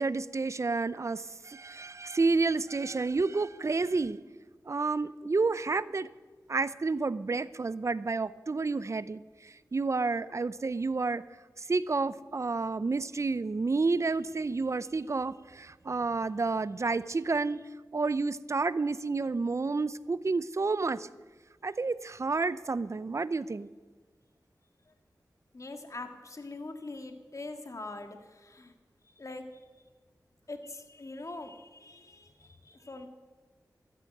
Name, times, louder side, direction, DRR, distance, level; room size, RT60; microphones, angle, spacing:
voice 1, 0.0-4.2 4.7-6.1 6.5-11.2 11.6-17.6 17.9-21.1 21.6-23.7, right 3 dB, 45° right, 17 dB, 0.5 m, -30 dB
voice 2, 25.5-28.7 29.2-29.6 30.5-33.1, left 2 dB, 50° left, 6 dB, 1.9 m, -43 dB
13.5 x 8.5 x 9.2 m, 1.3 s
cardioid pair, 45°, 7 cm